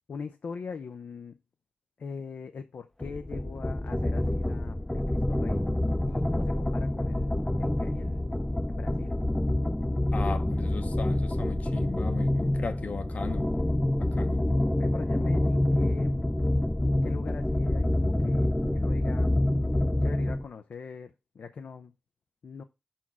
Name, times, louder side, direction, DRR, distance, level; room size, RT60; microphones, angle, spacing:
voice 1, 0.1-1.3 2.0-5.7 6.1-8.3 8.7-9.1 14.8-16.4 17.0-19.3 20.0-21.9 22.4-22.6, left 5 dB, 80° left, 0.5 m, -41 dB
sound 1, 3.0-20.4, left 1 dB, 10° left, 0.5 m, -27 dB
voice 2, 10.1-13.5 14.0-14.5, left 4 dB, 60° left, 0.9 m, -37 dB
5.7 x 4.4 x 6.0 m
wide cardioid pair, 80°, 3 cm